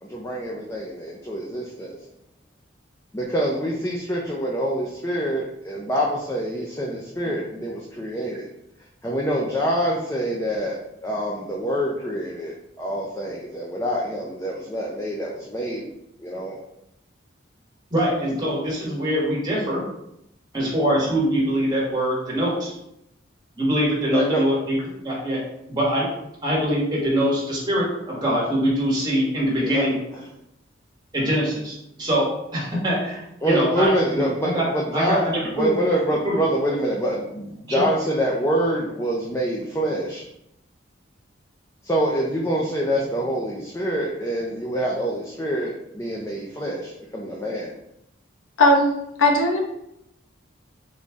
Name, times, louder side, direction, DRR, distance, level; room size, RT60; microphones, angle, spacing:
voice 1, 0.0-2.0 3.1-8.5 9.0-10.8 11.0-15.9 16.2-16.6 24.1-24.4 29.6-29.9 33.4-40.2 41.8-47.7, equal, 15° left, -3 dB, 0.5 m, -26 dB
voice 2, 17.9-19.8 20.5-22.7 23.6-25.4 25.7-26.1 26.4-30.0 31.1-34.6 34.9-35.7 36.2-36.4 37.7-37.8, equal, 20° right, -5 dB, 1.3 m, -23 dB
voice 3, 48.6-48.9 49.2-49.6, left 1 dB, 85° left, 0 dB, 0.9 m, -17 dB
4.0 x 3.2 x 3.5 m, 0.81 s
head